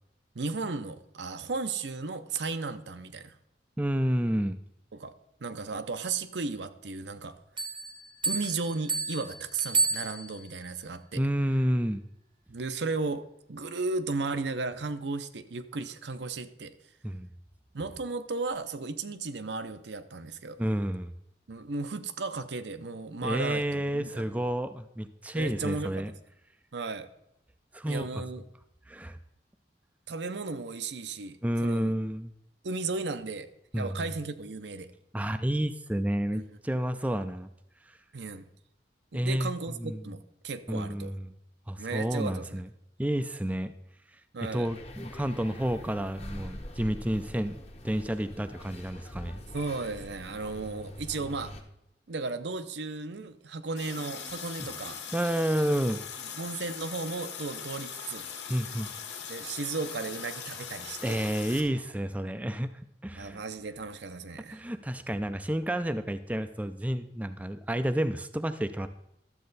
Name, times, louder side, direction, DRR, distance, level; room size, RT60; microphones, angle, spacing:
voice 1, 0.3-3.3 4.9-5.1 5.4-7.3 8.3-11.2 12.5-13.2 13.5-16.7 17.7-20.6 21.5-24.2 25.3-26.1 26.7-27.1 27.8-28.4 30.1-31.9 32.6-33.5 33.8-34.9 36.3-36.4 38.1-38.4 39.1-41.1 41.8-42.6 44.3-44.7 49.5-51.5 52.1-55.0 56.4-58.3 59.3-61.2 63.1-64.6, right 3 dB, 80° right, 10 dB, 0.7 m, -35 dB
voice 2, 3.8-4.6 11.1-12.0 17.0-17.3 20.6-21.1 23.2-26.1 27.7-28.2 28.9-29.2 31.4-32.3 33.7-34.1 35.1-37.5 37.8-38.0 39.1-39.5 39.8-40.0 40.7-41.3 41.7-42.7 43.0-43.7 44.5-49.4 54.6-54.7 55.1-56.0 58.5-58.9 61.0-62.7 63.0-63.4 64.5-68.9, right 1 dB, 10° right, 10 dB, 0.4 m, -30 dB
sound 1, 7.6-10.6, right 4 dB, 25° right, 0.8 m, -31 dB
sound 2, 44.6-51.6, left 1 dB, 35° left, 1.0 m, -44 dB
Water tap faucet, 53.8-61.6, left 7 dB, 90° left, 1.6 m, -40 dB
12.0 x 7.6 x 4.0 m, 0.82 s
head